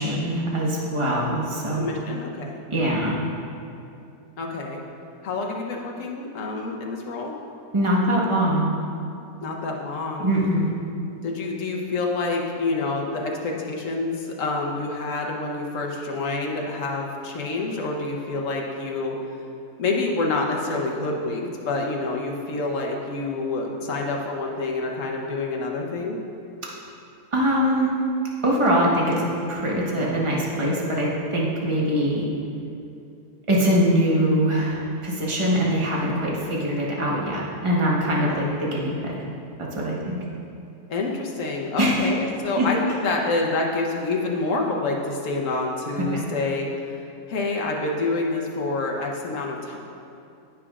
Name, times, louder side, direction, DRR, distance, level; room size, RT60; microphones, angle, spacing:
voice 1, 0.0-2.0 2.7-3.2 7.7-8.7 10.2-10.7 27.3-27.9 28.4-32.2 33.5-39.2 39.6-40.2 41.8-42.1 42.6-42.7 46.1-46.3, equal, 20° right, -4 dB, 1.2 m, -23 dB
voice 2, 1.8-2.6 4.4-4.8 5.2-7.4 9.4-10.3 11.2-19.2 19.8-26.2 38.2-38.3 40.9-47.0 47.3-49.8, left 3 dB, 60° left, 0 dB, 1.3 m, -27 dB
15.0 x 6.0 x 2.5 m, 2.6 s
omnidirectional pair, 1.6 m